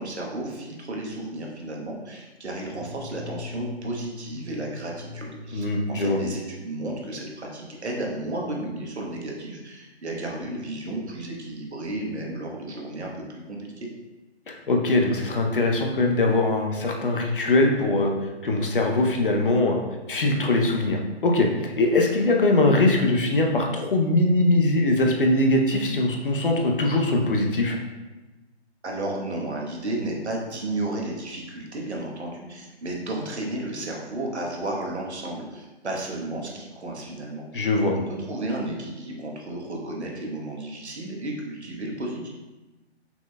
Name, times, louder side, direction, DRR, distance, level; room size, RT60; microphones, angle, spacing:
voice 1, 0.0-13.9 28.8-37.7 37.9-42.3, right 1 dB, 75° right, -1 dB, 1.3 m, -33 dB
sound 1, 2.5-6.6, left 4 dB, 25° right, 0.6 m, -41 dB
voice 2, 5.5-6.2 14.5-18.1 18.4-19.8 20.1-27.8 37.5-37.9, left 2 dB, 50° left, 2 dB, 0.8 m, -22 dB
5.9 x 3.9 x 2.3 m, 1.1 s
hypercardioid pair, 160°, 34 cm